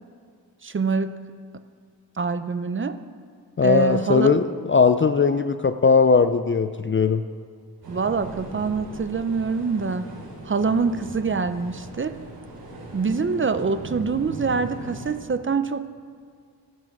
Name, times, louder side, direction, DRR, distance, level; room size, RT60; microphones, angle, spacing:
voice 1, 0.6-1.1 2.2-3.0 3.6-4.3 7.9-10.0 10.5-12.1 12.9-15.9, right 4 dB, 30° right, 11 dB, 0.5 m, -25 dB
voice 2, 3.6-7.2, left 5 dB, 30° left, 10 dB, 0.4 m, -19 dB
sound 1, 7.8-15.1, right 2 dB, 55° right, 4.7 m, -39 dB
15.0 x 11.0 x 6.0 m, 2.2 s
wide cardioid pair, 135°, 42 cm